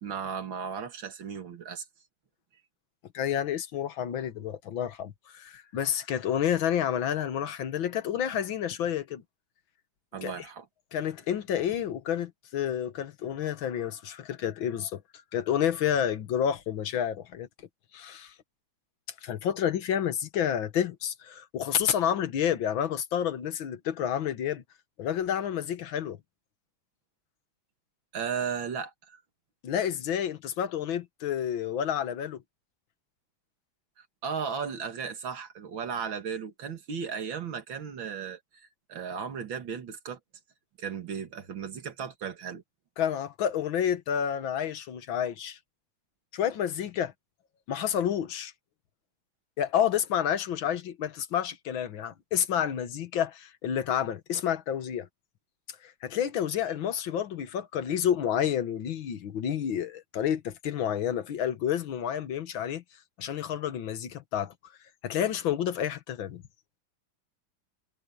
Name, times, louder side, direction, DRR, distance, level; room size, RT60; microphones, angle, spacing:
voice 1, 0.0-1.8 10.1-10.7 28.1-29.2 34.0-40.2 40.8-42.6, right 6 dB, 80° right, 2.6 m, -35 dB
voice 2, 3.1-9.2 10.2-10.3 10.9-15.0 15.3-17.5 17.9-18.3 19.2-24.6 25.0-26.2 29.6-32.4 43.0-45.6 46.3-47.1 47.7-48.5 49.6-55.1 55.8-62.8 63.2-64.5 65.0-66.4, left 9 dB, 80° left, 2.0 m, -29 dB
omnidirectional pair, 2.1 m